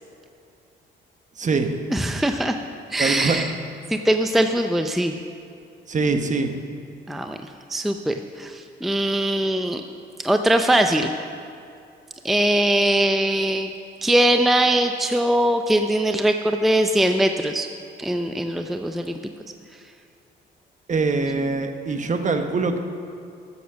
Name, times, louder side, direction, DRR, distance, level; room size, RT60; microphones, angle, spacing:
voice 1, 1.4-1.8 3.0-3.4 5.9-6.5 20.9-22.8, right 3 dB, 40° right, 6 dB, 1.1 m, -23 dB
voice 2, 1.9-2.6 2.9-3.5 3.9-5.2 7.1-7.4 7.7-9.8 10.2-11.1 12.2-13.7 14.0-17.7 18.0-19.2, right 1 dB, ahead, 6 dB, 0.5 m, -21 dB
12.5 x 7.3 x 7.0 m, 2.5 s
cardioid pair, 90°, 20 cm